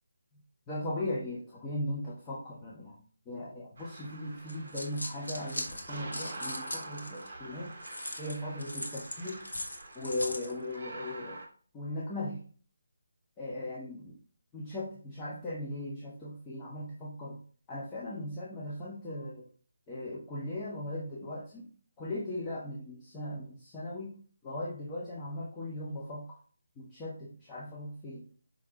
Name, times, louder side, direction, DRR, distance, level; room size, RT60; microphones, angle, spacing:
voice 1, 0.3-3.0 3.2-7.7 8.2-9.5 9.9-11.4 11.7-12.4 13.4-14.2 14.5-17.4 17.7-19.5 19.9-21.7 22.0-26.4 26.8-28.2, left 1 dB, 15° left, -6 dB, 1.1 m, -38 dB
sound 1, 3.8-11.5, right 2 dB, 35° right, 2.9 m, -46 dB
sound 2, 4.5-7.3 7.8-10.5, left 1 dB, 75° left, 1.3 m, -39 dB
5.8 x 4.8 x 3.7 m, 0.43 s
figure-of-eight pair, 150°, 0 cm